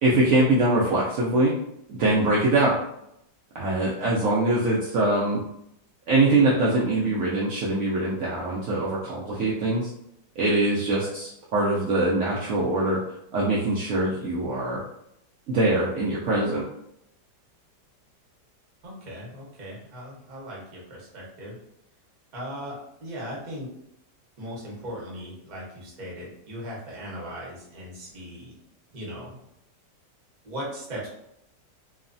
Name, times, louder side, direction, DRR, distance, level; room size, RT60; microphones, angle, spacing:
voice 1, 0.0-1.5 1.9-2.8 3.5-5.4 6.1-9.9 10.4-13.0 13.3-14.8 15.5-16.6, right 2 dB, 80° right, -6 dB, 0.7 m, -23 dB
voice 2, 18.8-21.6 22.3-23.7 24.4-28.5 28.9-29.3 30.4-31.1, equal, 40° right, -5 dB, 0.6 m, -38 dB
3.0 x 2.1 x 2.5 m, 0.78 s
omnidirectional pair, 1.9 m